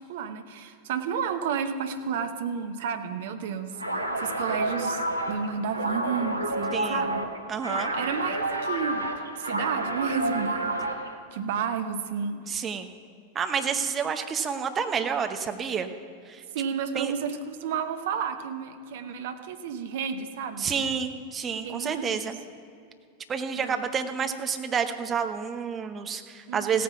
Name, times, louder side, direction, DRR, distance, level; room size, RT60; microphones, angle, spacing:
voice 1, 0.0-3.8 4.2-5.0 5.3-7.3 7.9-12.4 16.5-20.9 21.6-22.3 23.5-23.8 26.5-26.8, right 6 dB, 55° right, 8 dB, 1.0 m, -32 dB
sound 1, 3.7-11.2, right 1 dB, 85° right, 1.1 m, -30 dB
voice 2, 6.7-7.0 7.5-7.9 12.3-12.9 13.3-15.9 16.3-16.4 16.9-17.1 20.6-22.4 23.3-26.8, right 6 dB, 25° right, 7 dB, 1.0 m, -29 dB
16.0 x 9.3 x 5.9 m, 2.4 s
figure-of-eight pair, 90°, 0 cm